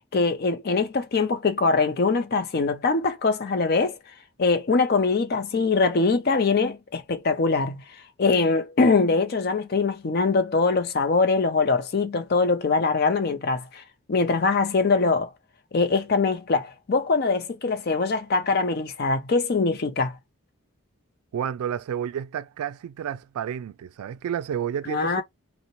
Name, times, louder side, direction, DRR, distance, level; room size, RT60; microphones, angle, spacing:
voice 1, 0.1-4.0 4.4-7.8 8.2-13.8 14.1-15.3 15.7-20.2 24.9-25.2, left 4 dB, 45° left, 0.4 m, -23 dB
voice 2, 21.3-25.2, right 9 dB, 85° right, 0.3 m, -30 dB
2.6 x 2.0 x 2.9 m
head